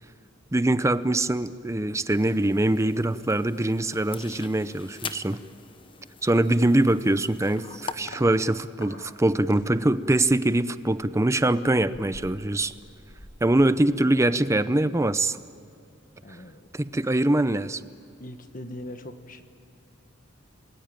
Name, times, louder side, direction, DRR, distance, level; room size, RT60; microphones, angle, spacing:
voice 1, 0.5-5.4 6.2-12.7 13.4-15.4 16.7-17.8, right 1 dB, 15° right, 14 dB, 0.6 m, -23 dB
sound 1, 2.1-7.9, left 5 dB, 25° left, 0.9 m, -42 dB
sound 2, 8.1-8.3 8.8-14.4 14.7-15.0, left 1 dB, 80° left, 4.3 m, -49 dB
voice 2, 16.2-16.7 18.2-19.4, left 1 dB, 45° left, 8 dB, 1.6 m, -40 dB
28.5 x 21.5 x 9.0 m, 2.5 s
head